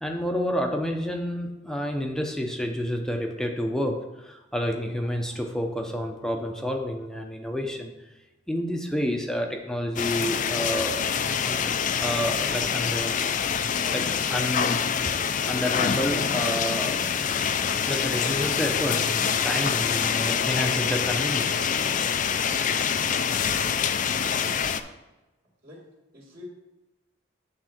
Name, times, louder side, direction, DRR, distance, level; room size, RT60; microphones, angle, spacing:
voice 1, 0.0-7.9 8.5-11.0 11.4-13.2 13.9-15.1 15.5-17.0 17.9-22.1, equal, 5° left, 3 dB, 0.7 m, -29 dB
sound 1, 10.0-24.8, left 7 dB, 40° left, 0.4 m, -26 dB
voice 2, 24.3-25.0 25.6-25.9 26.1-26.5, left 2 dB, 50° right, -6 dB, 2.2 m, -46 dB
8.7 x 3.7 x 5.9 m, 1.0 s
head